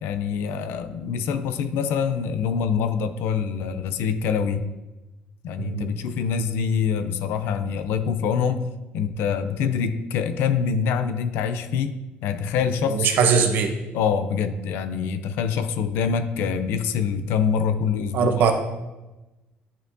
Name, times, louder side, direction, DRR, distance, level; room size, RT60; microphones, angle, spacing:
voice 1, 0.0-4.6 5.4-8.7 8.9-12.0 12.2-13.1 13.9-18.3, left 6 dB, 90° left, 10 dB, 0.5 m, -25 dB
voice 2, 5.6-5.9 12.9-13.7 18.1-18.5, right 6 dB, 60° right, 5 dB, 0.8 m, -20 dB
11.0 x 4.4 x 2.7 m, 1.1 s
cardioid pair, 160°, 4 cm